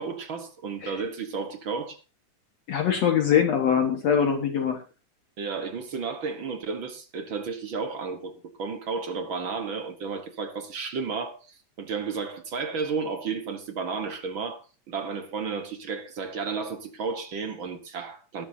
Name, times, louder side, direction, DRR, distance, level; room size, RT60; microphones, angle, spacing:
voice 1, 0.0-2.0 5.4-8.3 8.6-18.5, right 5 dB, 50° right, 1.6 m, -32 dB
voice 2, 2.7-4.8, left 8 dB, 60° left, 2.5 m, -23 dB
20.0 x 12.0 x 2.8 m
omnidirectional pair, 3.6 m